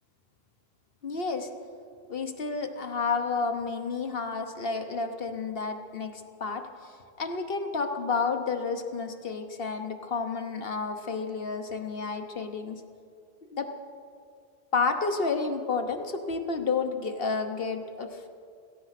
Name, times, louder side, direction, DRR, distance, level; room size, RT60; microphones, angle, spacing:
voice 1, 1.0-1.5 2.1-12.8 13.5-13.7 14.7-18.3, left 4 dB, 65° left, 6 dB, 1.3 m, -31 dB
17.0 x 14.0 x 5.9 m, 2.3 s
omnidirectional pair, 1.1 m